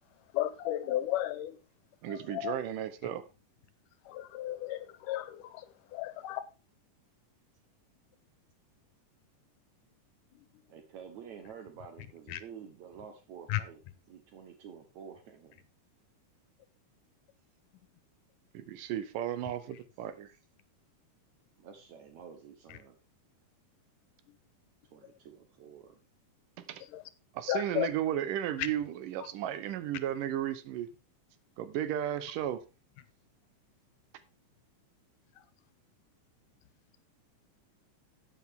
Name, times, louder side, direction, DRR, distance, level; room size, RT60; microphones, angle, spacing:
voice 1, 0.3-1.6 2.1-2.6 4.0-6.4 10.3-10.5 12.3-12.4 13.5-13.6 26.9-27.0 27.5-27.9 28.6-28.7, left 14 dB, 85° left, 13 dB, 2.5 m, -34 dB
voice 2, 2.0-3.2 18.5-20.3 26.7-26.8 27.3-30.9 31.6-32.6, right 11 dB, 85° right, 13 dB, 2.6 m, -34 dB
voice 3, 10.7-13.8 14.1-15.6 21.6-23.0 24.9-26.0, right 7 dB, 65° right, 7 dB, 2.3 m, -49 dB
11.0 x 9.1 x 3.6 m, 0.30 s
omnidirectional pair, 3.7 m